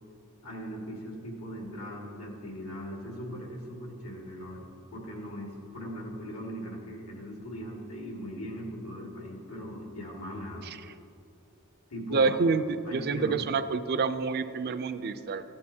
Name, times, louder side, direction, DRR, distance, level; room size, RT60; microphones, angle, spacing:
voice 1, 0.4-10.7 11.9-12.4 12.9-13.4, equal, 80° left, -2 dB, 2.1 m, -39 dB
voice 2, 12.1-15.4, right 4 dB, 50° right, 11 dB, 0.4 m, -28 dB
13.5 x 10.5 x 2.8 m, 2.7 s
head